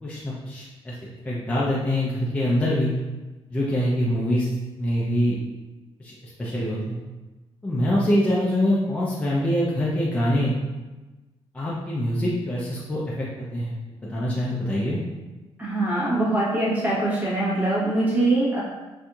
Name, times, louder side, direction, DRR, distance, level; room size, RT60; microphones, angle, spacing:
voice 1, 0.0-1.0 1.2-2.9 3.5-4.5 4.8-5.4 6.0-7.0 7.6-10.5 11.5-13.7 14.1-15.0, equal, 10° left, -7 dB, 0.5 m, -24 dB
voice 2, 15.6-18.6, right 2 dB, 15° right, -8 dB, 1.1 m, -23 dB
4.2 x 2.6 x 2.3 m, 1.2 s
cardioid pair, 145°, 10 cm